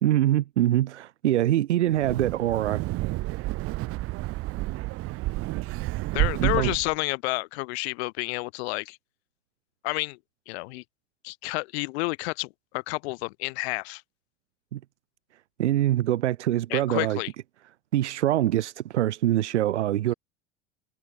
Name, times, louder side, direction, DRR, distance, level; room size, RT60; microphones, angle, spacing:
voice 1, 0.0-2.8 6.4-6.7 14.7-14.8 15.6-17.2 17.9-20.1, right 13 dB, 85° right, 1.0 m, -24 dB
Wind, 1.9-6.9, right 19 dB, 40° right, 0.7 m, -30 dB
voice 2, 6.1-9.0 9.8-10.2 10.5-10.8 11.2-14.0 16.7-17.3, left 25 dB, 65° left, 3.0 m, -30 dB
hypercardioid pair, 90°, 34 cm